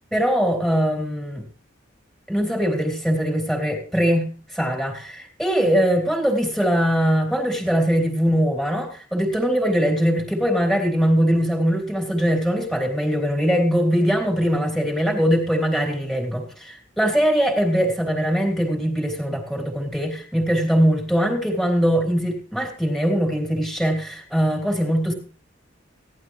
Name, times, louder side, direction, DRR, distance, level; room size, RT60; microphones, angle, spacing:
voice 1, 0.1-1.5 2.3-25.1, equal, ahead, 1 dB, 3.2 m, -21 dB
17.5 x 12.0 x 3.1 m, 0.41 s
head